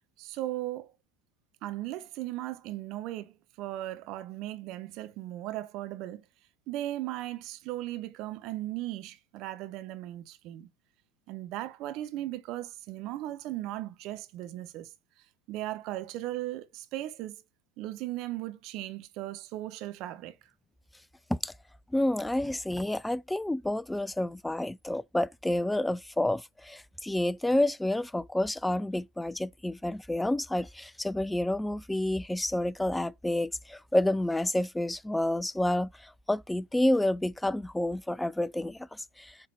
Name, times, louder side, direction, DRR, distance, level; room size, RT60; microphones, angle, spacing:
voice 1, 0.2-0.9 1.6-6.2 6.7-10.7 11.3-14.9 15.5-17.4 17.8-20.3, right 15 dB, 60° right, 1.1 m, -37 dB
voice 2, 21.9-39.4, left 1 dB, 5° left, 0.4 m, -29 dB
7.8 x 4.0 x 4.4 m
hypercardioid pair, 90°, 0 cm